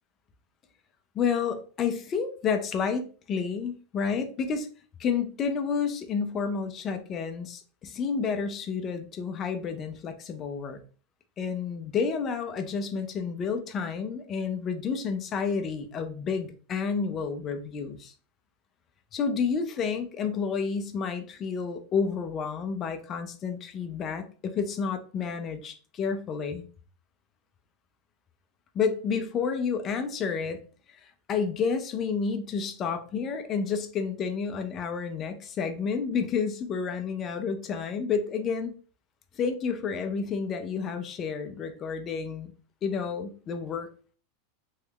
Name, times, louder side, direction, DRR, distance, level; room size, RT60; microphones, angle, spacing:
voice 1, 1.1-4.7 5.0-10.8 11.4-18.1 19.1-26.6 28.7-30.6 31.0-38.7 39.3-42.5 42.8-43.9, left 5 dB, 25° left, 7 dB, 0.4 m, -30 dB
3.3 x 3.1 x 2.3 m, 0.38 s
supercardioid pair, 170°, 0 cm